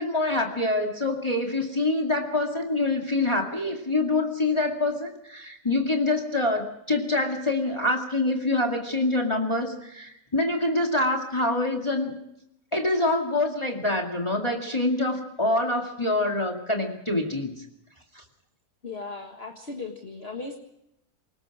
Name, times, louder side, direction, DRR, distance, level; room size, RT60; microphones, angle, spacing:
voice 1, 0.0-12.1 12.7-17.6 18.1-18.2, left 2 dB, 15° left, 2 dB, 2.3 m, -25 dB
voice 2, 18.8-20.5, left 3 dB, 35° left, 1 dB, 1.9 m, -37 dB
28.0 x 19.0 x 4.9 m, 0.81 s
omnidirectional pair, 1.8 m